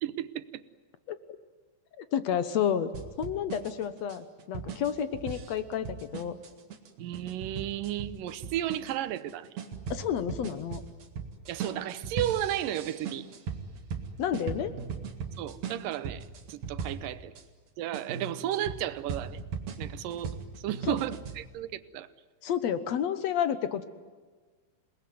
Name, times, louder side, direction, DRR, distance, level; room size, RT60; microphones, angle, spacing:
voice 1, 0.0-0.6 7.0-9.5 11.5-13.3 15.4-16.2 16.5-17.3 17.8-19.4 19.8-22.1, right 12 dB, 75° right, 14 dB, 2.5 m, -33 dB
voice 2, 2.0-2.9 3.2-6.4 9.9-10.8 14.2-14.8 20.9-21.0 22.4-23.8, left 9 dB, 65° left, 12 dB, 1.9 m, -30 dB
sound 1, 2.9-17.4 17.9-21.4, right 5 dB, 55° right, 3.0 m, -39 dB
28.0 x 20.0 x 9.5 m, 1.4 s
omnidirectional pair, 4.1 m